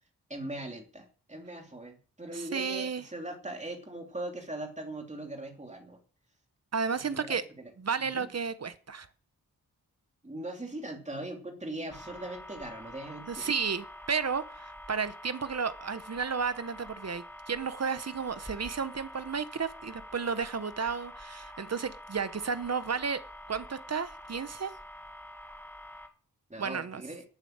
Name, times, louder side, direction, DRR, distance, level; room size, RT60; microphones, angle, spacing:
voice 1, 0.3-6.0 7.0-7.4 8.0-8.3 10.2-13.5 26.5-27.2, right 1 dB, 20° right, 2.7 m, -40 dB
voice 2, 2.3-3.0 6.7-7.4 7.8-9.1 13.3-23.2 23.5-24.7 26.6-27.0, right 5 dB, 45° right, 1.0 m, -33 dB
sound 1, 11.9-26.1, left 1 dB, 5° left, 1.8 m, -47 dB
11.0 x 9.1 x 6.5 m
wide cardioid pair, 120°, 37 cm